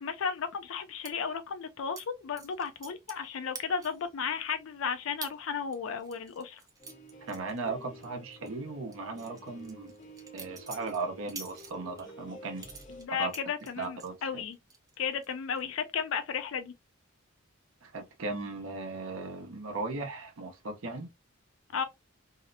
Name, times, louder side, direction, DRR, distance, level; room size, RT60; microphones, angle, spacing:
voice 1, 0.0-6.6 13.0-14.6 15.0-16.7 21.7-21.8, left 6 dB, 75° left, 0.4 m, -34 dB
sound 1, 1.0-1.1 1.9-2.1 2.4-3.3 3.5-4.1 4.5-4.6 5.2-5.3 5.7-8.1 8.3-8.5 8.9-12.1 12.6-14.1 14.5-14.9 15.2-15.6, right 5 dB, 15° right, 0.4 m, -46 dB
sound 2, 6.8-13.1, equal, 40° left, 0.7 m, -51 dB
voice 2, 7.2-9.9 10.3-12.7 13.2-13.3 13.8-14.4 17.8-21.1, right 3 dB, 80° right, 0.7 m, -37 dB
2.8 x 2.0 x 2.5 m
head